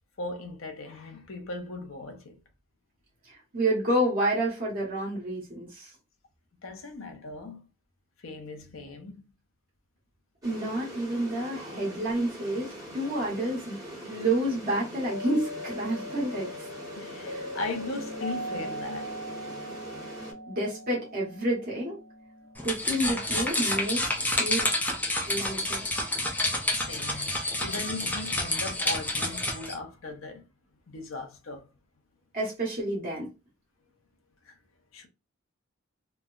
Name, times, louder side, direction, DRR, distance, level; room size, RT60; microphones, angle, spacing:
voice 1, 0.2-2.4 6.6-7.7 8.2-9.2 16.9-19.1 26.7-30.4 30.9-31.7 34.4-34.6 34.9-35.1, left 3 dB, 90° left, 0.7 m, -38 dB
voice 2, 3.2-5.9 10.4-13.8 14.0-16.5 17.3-17.5 20.5-22.0 22.6-24.7 25.3-25.8 32.3-33.3, right 1 dB, 45° right, 1.3 m, -29 dB
sound 1, 10.4-20.3, right 1 dB, 20° right, 1.1 m, -43 dB
sound 2, 15.0-23.5, equal, 55° left, 0.8 m, -40 dB
sound 3, 22.6-29.7, left 1 dB, 10° left, 0.5 m, -29 dB
3.2 x 2.1 x 2.4 m
head